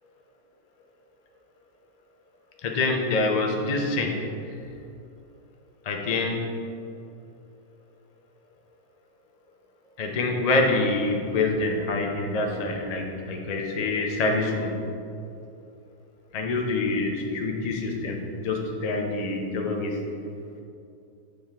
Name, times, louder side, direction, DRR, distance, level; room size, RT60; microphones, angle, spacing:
voice 1, 2.6-4.2 5.9-6.4 10.0-14.7 16.3-18.2 18.4-20.0, left 3 dB, 65° left, 2 dB, 0.3 m, -26 dB
7.4 x 5.1 x 3.5 m, 2.5 s
omnidirectional pair, 1.7 m